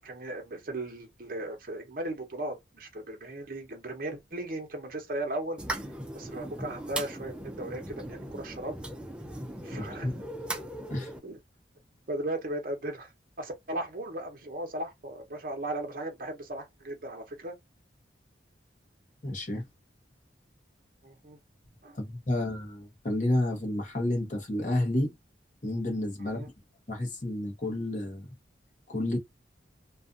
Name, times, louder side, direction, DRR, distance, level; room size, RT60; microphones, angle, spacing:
voice 1, 0.0-5.6 6.1-8.8 9.6-10.2 11.2-11.4 12.1-13.1 13.4-17.6 21.0-21.4 21.8-22.0 26.3-26.5, right 1 dB, 50° right, 0.8 m, -37 dB
sound 1, 5.6-11.2, right 1 dB, 5° right, 0.3 m, -38 dB
voice 2, 9.7-10.2 10.9-11.1 19.2-19.6 22.0-25.1 25.6-26.5 26.9-28.3 28.9-29.2, left 1 dB, 45° left, 0.9 m, -30 dB
2.5 x 2.4 x 2.4 m
head